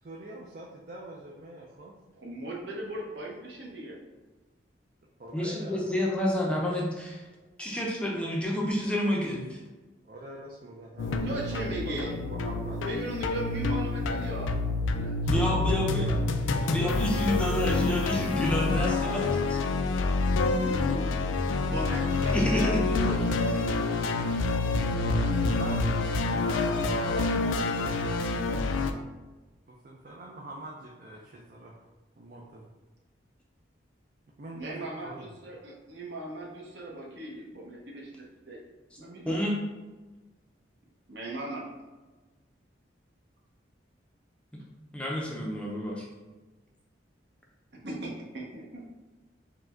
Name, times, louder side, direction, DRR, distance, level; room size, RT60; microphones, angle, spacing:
voice 1, 0.0-1.9 5.2-5.8 10.0-12.8 15.5-16.2 18.0-19.5 21.5-22.3 25.4-25.9 26.2-27.5 27.8-27.9 29.8-31.7 32.2-32.7 34.4-35.3, right 2 dB, 50° right, -2 dB, 0.4 m, -42 dB
voice 2, 2.2-4.0 11.1-12.1 12.8-14.5 14.9-15.3 20.4-21.1 21.5-24.3 34.5-38.6 39.0-39.5 41.1-41.7 47.8-48.9, right 1 dB, 65° right, -2 dB, 0.9 m, -38 dB
voice 3, 5.3-7.2 7.6-9.6 15.2-16.1 16.6-19.2 22.3-22.9 24.9-25.2 39.3-39.7 44.5-44.6 44.9-46.1, left 1 dB, 5° left, -3 dB, 0.5 m, -29 dB
sound 1, 11.0-28.9, left 3 dB, 90° left, 0.4 m, -27 dB
4.8 x 2.2 x 3.7 m, 1.2 s
head